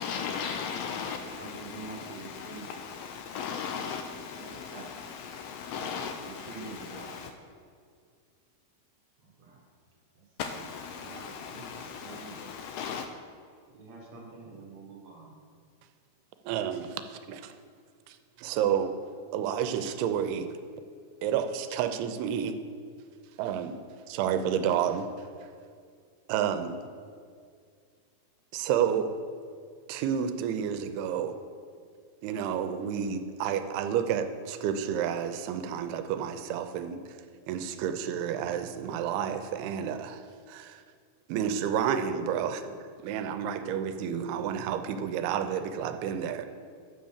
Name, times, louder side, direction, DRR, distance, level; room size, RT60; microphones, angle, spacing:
voice 1, 0.0-7.3 10.4-13.1, left 6 dB, 80° left, 6 dB, 2.1 m, -37 dB
voice 2, 1.2-2.7 3.6-4.0 4.4-4.9 5.7-5.9 6.2-7.2 9.2-9.6 10.2-10.6 10.9-12.7 13.7-15.4, right 3 dB, 60° right, -2 dB, 2.1 m, -47 dB
voice 3, 16.5-17.5 18.1-18.9 19.3-20.5 21.2-22.6 23.4-23.8 24.1-25.1 26.3-26.8 28.5-29.1 29.9-31.4 32.2-37.1 37.5-40.2 40.5-40.8 41.3-46.4, right 8 dB, 90° right, 8 dB, 2.6 m, -30 dB
7.9 x 6.3 x 7.1 m, 2.2 s
omnidirectional pair, 4.4 m